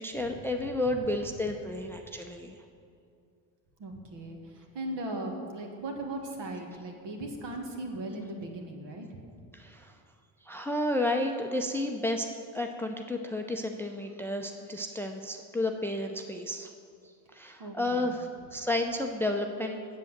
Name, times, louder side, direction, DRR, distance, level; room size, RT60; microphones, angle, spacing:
voice 1, 0.0-2.6 9.5-9.9 10.4-12.3 12.5-16.7 17.3-19.8, left 1 dB, 5° left, 4 dB, 0.6 m, -31 dB
voice 2, 3.8-9.1 17.6-18.1, right 1 dB, 60° right, 2 dB, 1.8 m, -38 dB
7.8 x 7.5 x 7.3 m, 2.4 s
cardioid pair, 85°, 47 cm